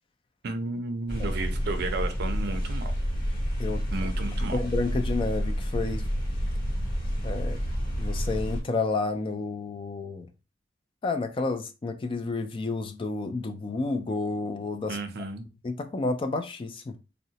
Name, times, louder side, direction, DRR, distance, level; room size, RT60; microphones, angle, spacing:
voice 1, 0.4-2.9 3.9-4.6 14.9-15.4, right 2 dB, 55° right, 0.5 m, -33 dB
sound 1, 1.1-8.6, equal, 50° left, 0.9 m, -29 dB
voice 2, 4.5-6.0 7.2-7.6 8.0-10.3 11.0-15.0 15.6-16.9, left 3 dB, 25° left, 0.3 m, -30 dB
3.7 x 2.1 x 2.7 m
head